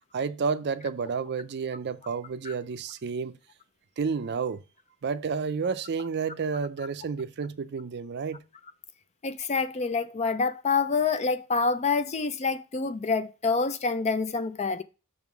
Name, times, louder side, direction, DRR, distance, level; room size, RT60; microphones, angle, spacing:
voice 1, 0.1-3.3 4.0-4.6 5.0-8.4, right 5 dB, 50° right, 0.5 m, -30 dB
voice 2, 9.2-14.8, left 4 dB, 30° left, 0.4 m, -27 dB
6.2 x 3.8 x 6.0 m
head